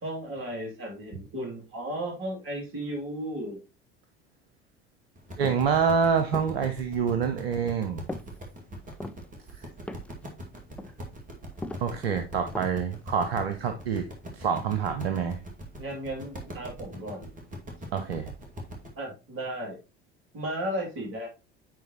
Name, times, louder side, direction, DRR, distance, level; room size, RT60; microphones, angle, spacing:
voice 1, 0.0-3.6 15.8-17.3 19.0-19.8 20.3-21.3, right 1 dB, 40° right, 1 dB, 2.8 m, -34 dB
sound 1, 5.2-18.9, equal, 25° right, 2.1 m, -42 dB
sound 2, 5.4-5.7 6.3-6.7 7.1-7.3 8.1-8.4 8.8-9.3 9.9-10.2 10.6-10.9 11.6-11.9 12.5-12.9 13.2-13.3, left 1 dB, 5° left, 0.4 m, -39 dB
voice 2, 5.4-8.0 11.8-14.0 14.3-15.4 17.9-18.3, right 6 dB, 70° right, 7 dB, 0.7 m, -26 dB
9.3 x 3.9 x 2.9 m, 0.29 s
figure-of-eight pair, 65°, 31 cm